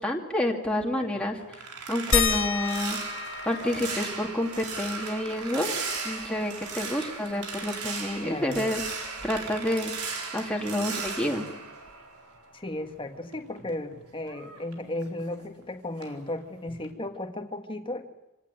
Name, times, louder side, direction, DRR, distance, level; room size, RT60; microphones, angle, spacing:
voice 1, 0.0-1.4 1.9-3.0 3.4-5.7 6.0-8.8 9.2-11.5, left 1 dB, 5° left, 0 dB, 2.5 m, -29 dB
sound 1, 1.0-12.6 13.0-15.6 16.0-16.3 16.7-16.9, right 4 dB, 85° right, 4.6 m, -37 dB
sound 2, 2.1-7.3 7.6-7.7 8.0-9.8 11.1-11.2 11.9-12.0, left 6 dB, 60° left, 2.0 m, -33 dB
voice 2, 8.2-8.6 12.5-18.1, left 1 dB, 25° left, 6 dB, 1.9 m, -35 dB
26.5 x 18.0 x 9.1 m, 1.0 s
head